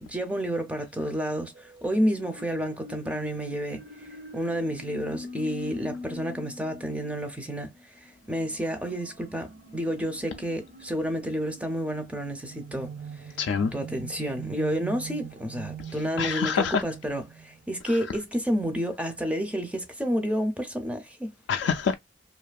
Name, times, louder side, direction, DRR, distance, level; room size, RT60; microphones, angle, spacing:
voice 1, 0.0-3.8 4.1-7.7 8.0-13.3 13.7-21.3, equal, 5° right, 0.4 m, -30 dB
sound 1, 1.5-17.8, right 2 dB, 50° right, 0.6 m, -43 dB
voice 2, 13.4-13.7 16.2-16.8 17.9-18.0 21.5-22.0, left 6 dB, 75° left, 0.3 m, -25 dB
2.6 x 2.4 x 2.2 m
head